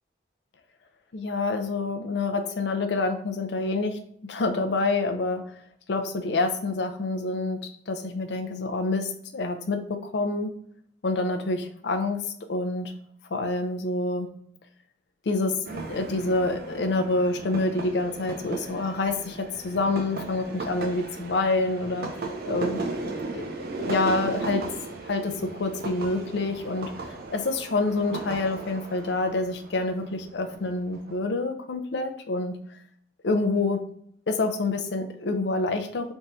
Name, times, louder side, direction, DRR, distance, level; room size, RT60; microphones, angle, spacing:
voice 1, 1.1-4.0 4.3-5.4 5.9-10.5 11.0-12.2 12.5-12.9 13.3-14.3 15.3-22.2 22.5-22.8 23.3-23.4 23.9-24.7 25.0-27.0 27.3-32.6 33.2-33.8 34.3-36.1, left 2 dB, 70° left, 6 dB, 0.5 m, -27 dB
sound 1, 15.7-31.2, right 3 dB, 55° right, 0.5 m, -36 dB
3.5 x 2.6 x 4.2 m, 0.67 s
head